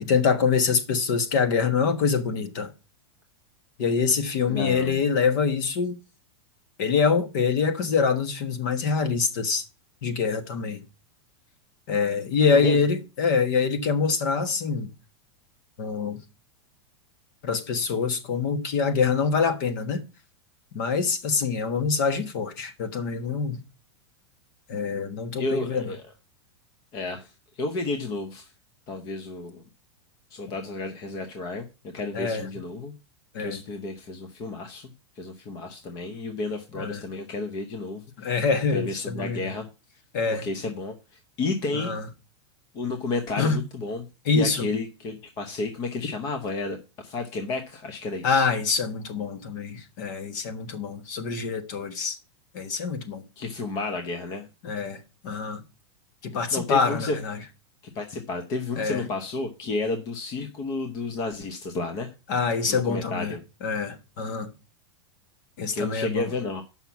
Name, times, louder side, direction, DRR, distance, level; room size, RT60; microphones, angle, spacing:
voice 1, 0.0-2.7 3.8-5.9 6.8-9.6 10.0-10.8 11.9-14.9 15.8-16.2 17.4-20.0 20.7-23.6 24.7-25.9 32.1-32.5 33.3-33.6 36.7-37.0 38.2-39.5 40.1-40.5 41.7-42.0 43.4-43.6 44.2-44.7 48.2-52.2 52.5-53.2 54.6-55.6 56.2-57.4 58.8-59.0 62.3-64.5 65.6-66.3, left 5 dB, 40° left, 1.4 m, -25 dB
voice 2, 4.5-5.0 12.5-12.8 25.4-26.0 26.9-28.5 28.9-29.6 30.3-32.9 33.4-38.3 38.7-39.7 40.3-41.9 42.7-44.1 44.3-48.5 53.4-54.5 56.5-57.2 57.9-62.1 62.7-63.4 65.7-66.6, left 3 dB, 25° left, 0.8 m, -32 dB
7.7 x 5.7 x 7.0 m
supercardioid pair, 180°, 15 cm